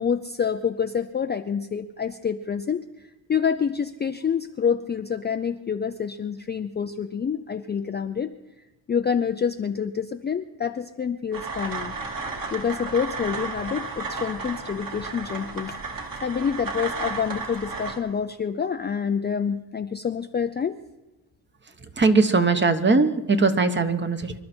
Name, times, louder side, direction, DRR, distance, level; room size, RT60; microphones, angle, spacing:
voice 1, 0.0-2.8 3.3-8.4 8.9-11.9 12.5-20.8, left 7 dB, 25° left, 7 dB, 0.4 m, -27 dB
sound 1, 11.3-18.0, right 4 dB, 45° right, 2.6 m, -33 dB
voice 2, 22.0-24.3, right 3 dB, 25° right, 9 dB, 1.1 m, -20 dB
26.0 x 12.0 x 4.4 m, 1.0 s
cardioid pair, 120°, 46 cm